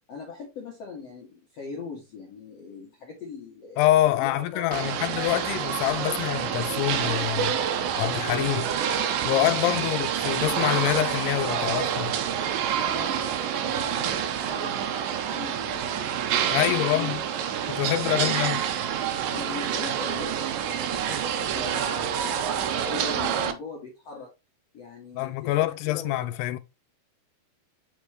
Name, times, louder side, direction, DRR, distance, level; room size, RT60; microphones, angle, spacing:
voice 1, 0.1-5.2 8.4-8.7 12.8-17.2 18.0-18.4 19.3-24.3 24.7-26.3, left 5 dB, 55° left, 1.8 m, -41 dB
voice 2, 3.8-7.6 8.0-8.7 9.2-12.1 16.5-17.2 17.7-18.6 25.2-26.6, left 15 dB, 80° left, 2.6 m, -25 dB
sound 1, 4.7-23.5, right 8 dB, 75° right, 2.2 m, -27 dB
7.1 x 5.1 x 3.1 m
omnidirectional pair, 4.9 m